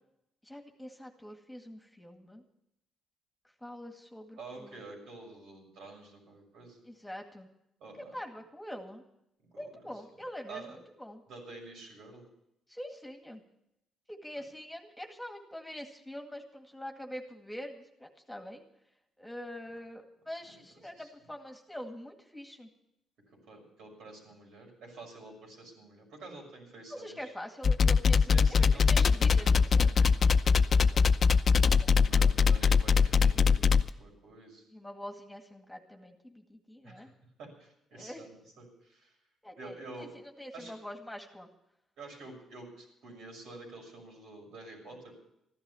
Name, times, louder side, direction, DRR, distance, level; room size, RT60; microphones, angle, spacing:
voice 1, 0.4-2.4 3.6-4.8 6.9-7.5 8.0-9.0 9.6-11.2 12.7-13.4 14.1-18.6 19.2-22.7 26.9-29.9 30.9-31.1 31.8-32.7 34.7-37.1 37.9-38.2 39.4-40.1 40.4-41.5, equal, 5° left, 4 dB, 2.1 m, -45 dB
voice 2, 4.4-6.8 7.8-8.1 9.5-9.7 10.5-10.8 11.3-12.3 20.4-20.6 20.9-21.1 23.5-27.3 28.3-30.5 31.9-34.7 36.8-37.1 37.4-39.1 39.6-40.1 40.5-40.7 42.0-45.1, right 3 dB, 85° right, -1 dB, 6.4 m, -49 dB
sound 1, 27.6-33.9, left 5 dB, 45° left, 0.7 m, -22 dB
14.5 x 12.0 x 7.1 m, 0.81 s
cardioid pair, 90°, 0 cm